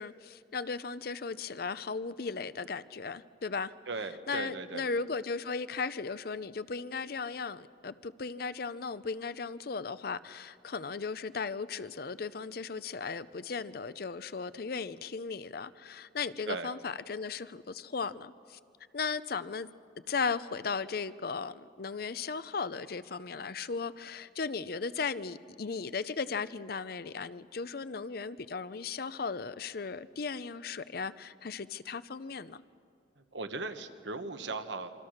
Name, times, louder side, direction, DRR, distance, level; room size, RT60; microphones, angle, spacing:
voice 1, 0.0-3.7 4.3-18.6 18.9-19.7 20.1-32.6, left 5 dB, 55° left, 15 dB, 0.6 m, -36 dB
voice 2, 3.9-4.8 16.4-16.7 33.3-34.9, right 3 dB, 75° right, 8 dB, 1.3 m, -37 dB
27.0 x 24.5 x 6.5 m, 2.4 s
head